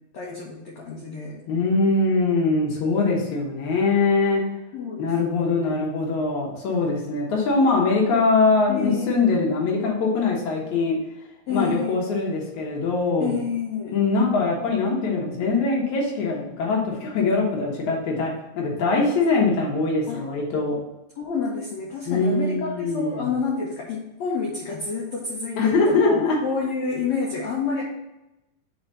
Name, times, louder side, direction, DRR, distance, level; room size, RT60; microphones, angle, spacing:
voice 1, 0.1-1.4 4.7-5.8 8.7-9.3 11.5-12.0 13.2-14.0 20.1-20.2 21.2-27.8, left 5 dB, 85° left, -3 dB, 1.5 m, -29 dB
voice 2, 1.5-4.4 5.0-11.0 11.5-13.4 13.9-20.8 22.1-23.3 25.6-26.4, left 3 dB, 65° left, -1 dB, 1.9 m, -22 dB
4.7 x 4.5 x 5.3 m, 0.93 s
omnidirectional pair, 4.5 m